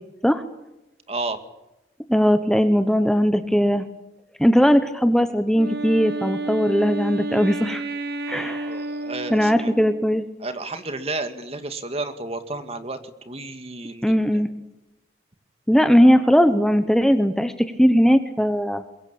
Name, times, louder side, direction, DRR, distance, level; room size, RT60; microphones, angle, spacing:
voice 1, 1.1-1.4 8.7-9.7 10.4-13.0 13.3-14.4, right 2 dB, 35° right, 9 dB, 2.2 m, -32 dB
voice 2, 2.1-3.9 4.4-7.8 8.3-8.7 9.3-10.2 14.0-14.5 15.7-18.8, equal, 5° left, 9 dB, 1.1 m, -19 dB
Wind instrument woodwind instrument, 5.5-10.2, right 2 dB, 65° right, 1.9 m, -31 dB
23.0 x 22.0 x 8.7 m, 0.94 s
head